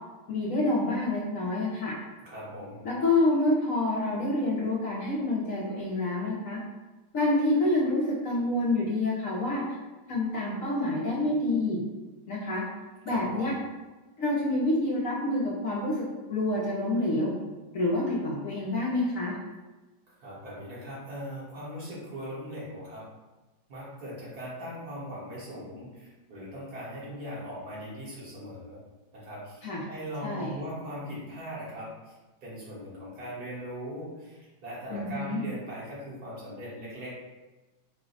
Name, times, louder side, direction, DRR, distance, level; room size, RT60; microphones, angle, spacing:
voice 1, 0.3-1.9 2.8-6.6 7.1-9.6 10.1-11.8 12.3-12.6 13.0-13.5 14.2-16.0 16.3-17.3 17.7-19.4 29.6-29.8 30.2-30.6 34.9-35.4, left 2 dB, 60° left, -5 dB, 1.0 m, -27 dB
voice 2, 2.3-2.8 13.1-13.5 20.2-23.0 23.7-28.8 29.1-37.2, equal, 60° right, -8 dB, 1.9 m, -40 dB
4.8 x 2.2 x 3.9 m, 1.2 s
omnidirectional pair, 1.9 m